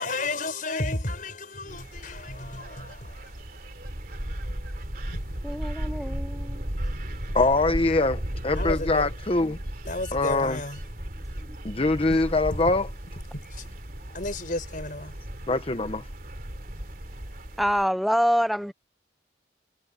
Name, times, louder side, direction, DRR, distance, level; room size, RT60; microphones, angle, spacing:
voice 1, 0.0-3.3 5.1-5.2 8.6-9.1 9.9-10.8 12.5-12.6 13.3-13.7 14.1-15.1, left 2 dB, 45° left, 5.4 m, -32 dB
sound 1, 1.7-17.8, equal, 50° right, 3.3 m, -35 dB
voice 2, 5.4-6.6 17.6-18.7, equal, ahead, 0.4 m, -25 dB
voice 3, 7.3-9.6 10.1-10.6 11.6-12.9 15.5-16.1, left 2 dB, 30° left, 0.8 m, -23 dB
head